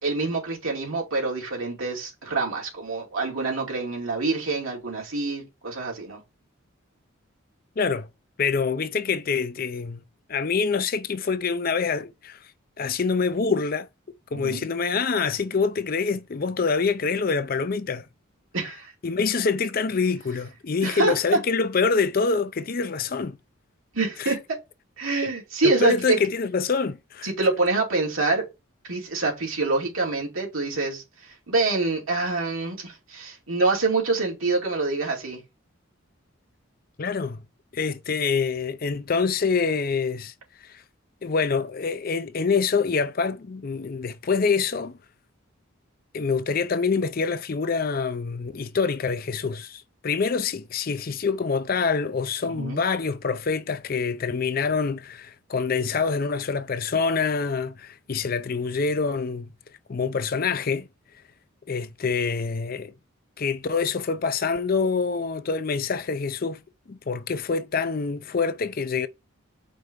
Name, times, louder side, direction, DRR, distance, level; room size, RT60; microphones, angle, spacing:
voice 1, 0.0-6.2 14.3-14.6 18.5-18.9 20.8-21.4 23.9-24.6 25.0-26.2 27.2-28.4 28.9-35.4 52.4-52.8, right 3 dB, 80° right, 2.7 m, -26 dB
voice 2, 7.8-8.1 8.4-10.0 10.3-12.4 12.8-13.9 14.3-18.0 19.0-23.4 24.2-24.4 25.2-25.3 25.6-27.3 37.0-37.4 37.7-40.3 40.6-40.8 41.2-45.0 46.1-59.5 59.9-60.9 61.7-62.9 63.4-66.6 66.9-69.1, left 5 dB, 45° left, 0.5 m, -26 dB
5.2 x 3.3 x 5.3 m
head